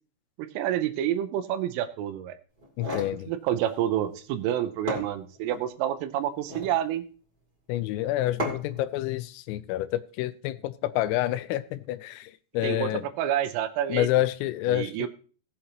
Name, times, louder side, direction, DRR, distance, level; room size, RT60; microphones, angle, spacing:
voice 1, 0.4-2.4 3.3-7.0 12.6-12.9 13.2-14.1 14.7-15.1, right 11 dB, 80° right, 8 dB, 3.4 m, -28 dB
sound 1, 2.6-3.2 4.4-4.5 4.9-5.6 6.3-6.8 8.4-8.8, equal, 20° right, 1.4 m, -34 dB
voice 2, 2.8-3.3 7.7-13.1 13.9-15.1, left 14 dB, 85° left, 14 dB, 3.3 m, -28 dB
18.5 x 7.7 x 2.9 m, 0.38 s
omnidirectional pair, 5.8 m